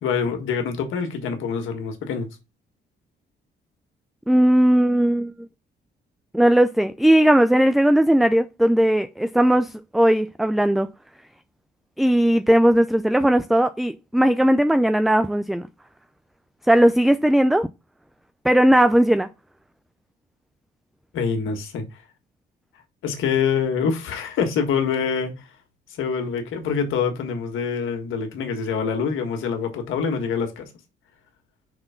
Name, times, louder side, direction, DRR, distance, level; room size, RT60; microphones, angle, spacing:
voice 1, 0.0-2.3 21.1-22.0 23.0-25.5 26.0-30.7, left 6 dB, 80° left, 1.6 m, -25 dB
voice 2, 4.3-5.3 6.3-10.9 12.0-15.7 16.7-17.7 18.4-19.3, right 1 dB, ahead, 0.4 m, -18 dB
5.9 x 3.4 x 5.6 m
cardioid pair, 90°, 20 cm